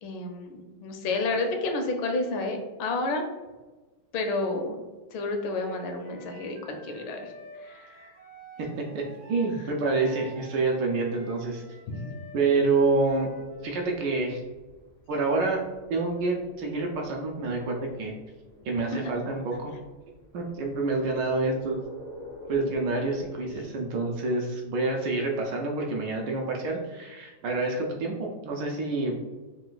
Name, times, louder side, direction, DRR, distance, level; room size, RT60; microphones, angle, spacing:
voice 1, 0.0-3.3 4.1-4.8 5.1-7.3 7.6-8.1 11.9-12.2, left 3 dB, 80° left, 4 dB, 1.4 m, -30 dB
Wind instrument woodwind instrument, 5.4-13.9, right 1 dB, 55° right, 0.7 m, -49 dB
voice 2, 8.6-9.0 9.3-11.6 12.3-13.3 13.6-14.4 15.1-15.6 15.9-18.1 18.6-19.7 20.3-21.8 22.5-29.1, right 3 dB, 75° right, 0 dB, 1.1 m, -27 dB
sound 1, 12.7-23.6, equal, 10° left, 0.3 m, -48 dB
3.8 x 2.4 x 3.8 m, 1.2 s
omnidirectional pair, 2.3 m